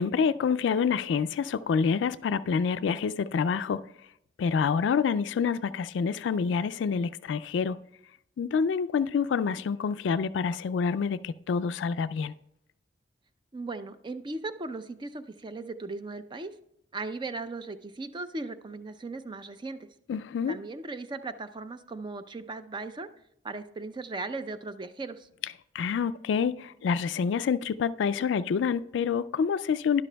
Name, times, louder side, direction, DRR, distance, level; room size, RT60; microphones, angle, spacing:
voice 1, 0.0-3.8 4.4-7.8 8.4-12.3 20.1-20.6 25.7-30.0, left 6 dB, 75° left, 0.3 m, -27 dB
voice 2, 13.5-16.5 16.9-19.9 20.5-23.1 23.4-25.3, right 3 dB, 25° right, 0.5 m, -37 dB
12.0 x 11.0 x 2.2 m
head